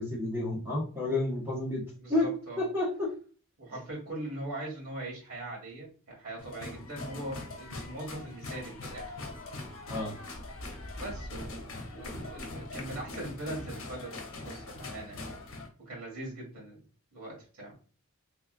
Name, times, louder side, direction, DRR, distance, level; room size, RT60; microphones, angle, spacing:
voice 1, 0.0-1.8 2.1-2.3 2.6-3.1 9.9-10.1, left 2 dB, 10° right, -4 dB, 1.2 m, -30 dB
voice 2, 2.0-2.6 3.6-9.3 10.9-15.3 15.8-16.8 17.1-17.7, right 1 dB, 75° right, -3 dB, 1.8 m, -41 dB
sound 1, 6.4-15.7, left 2 dB, 60° left, 0.9 m, -42 dB
3.5 x 3.1 x 2.4 m, 0.39 s
head